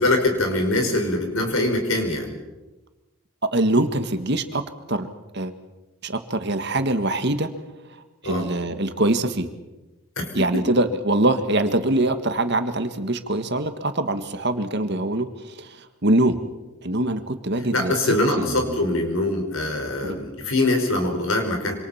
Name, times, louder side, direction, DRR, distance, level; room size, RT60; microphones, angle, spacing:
voice 1, 0.0-2.3 8.2-8.5 10.2-10.3 17.6-21.8, left 2 dB, 65° left, 4 dB, 5.2 m, -23 dB
voice 2, 3.5-4.6 4.9-5.1 5.3-5.5 6.0-7.5 8.2-9.5 10.3-16.4 16.8-18.8 20.0-20.2, right 1 dB, 50° right, 9 dB, 1.7 m, -23 dB
26.5 x 26.5 x 5.8 m, 1.1 s
head